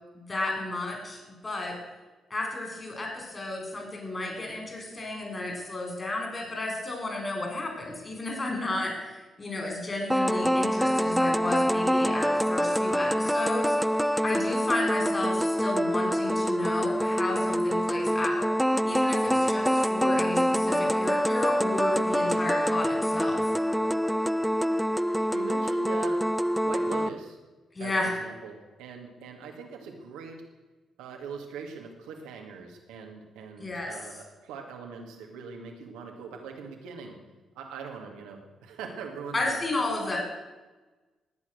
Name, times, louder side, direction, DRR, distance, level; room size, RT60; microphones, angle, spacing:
voice 1, 0.1-1.7 2.3-18.5 18.8-23.4 27.7-28.2 33.6-34.0 39.3-40.2, left 2 dB, 35° left, 2 dB, 6.1 m, -32 dB
sound 1, 10.1-27.1, equal, ahead, 0.5 m, -25 dB
voice 2, 25.1-26.2 26.6-27.4 27.8-30.4 31.0-37.2 37.6-39.5, right 5 dB, 75° right, 2 dB, 2.2 m, -42 dB
19.0 x 8.5 x 6.5 m, 1.2 s
hypercardioid pair, 40°, 0 cm